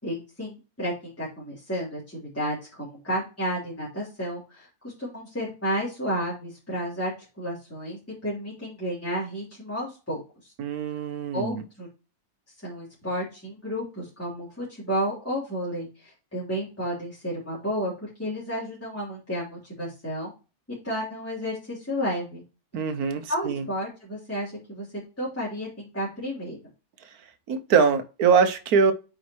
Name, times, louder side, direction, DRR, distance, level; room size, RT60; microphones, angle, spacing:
voice 1, 0.0-7.1 7.4-10.5 11.3-11.9 12.6-20.3 20.8-22.4 23.3-24.9 25.2-26.6, equal, 10° left, 3.5 m, -32 dB
voice 2, 10.6-11.6 22.7-23.6 27.5-28.9, right 6 dB, 65° right, 1.4 m, -23 dB
8.9 x 5.2 x 2.9 m
omnidirectional pair, 1.7 m